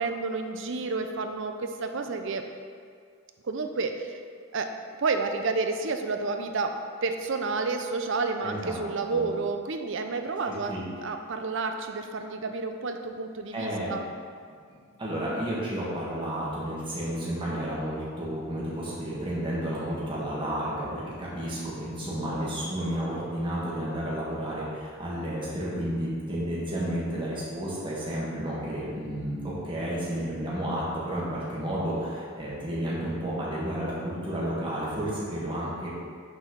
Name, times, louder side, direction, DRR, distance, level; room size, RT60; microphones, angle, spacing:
voice 1, 0.0-2.4 3.4-4.2 4.5-4.7 5.0-10.7 11.0-14.1, right 4 dB, 60° right, 6 dB, 0.6 m, -30 dB
voice 2, 8.4-8.8 9.1-9.3 10.4-10.8 13.5-13.9 14.7-35.9, right 1 dB, 25° right, -8 dB, 1.7 m, -31 dB
6.6 x 4.5 x 5.9 m, 2.1 s
head